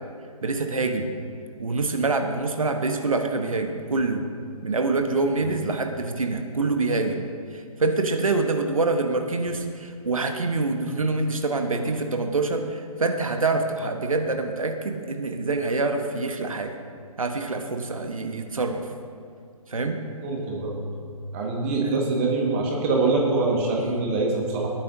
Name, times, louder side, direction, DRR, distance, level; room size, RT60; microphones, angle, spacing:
voice 1, 0.4-1.1 1.6-4.2 4.6-7.3 7.5-16.7 17.2-18.8 19.7-20.0 21.8-22.0 23.8-24.1, right 3 dB, 65° right, 5 dB, 1.2 m, -26 dB
voice 2, 20.2-20.7 21.3-24.7, right 3 dB, 20° right, -2 dB, 1.6 m, -24 dB
19.5 x 8.9 x 2.7 m, 2.3 s
figure-of-eight pair, 140°, 19 cm